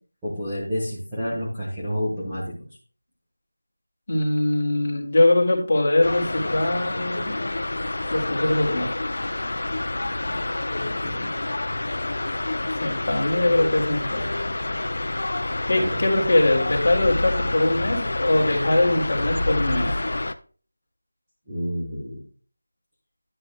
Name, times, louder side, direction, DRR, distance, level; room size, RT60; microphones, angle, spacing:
voice 1, 0.2-2.5 10.9-11.3 15.9-16.0 21.5-22.2, equal, 5° right, -12 dB, 1.3 m, -29 dB
voice 2, 4.1-7.4 8.1-8.9 12.8-14.3 15.7-19.9, left 2 dB, 35° left, -1 dB, 2.1 m, -22 dB
sound 1, 6.0-20.3, left 2 dB, 50° left, 0.5 m, -28 dB
10.0 x 8.7 x 2.2 m, 0.40 s
figure-of-eight pair, 180°, 0 cm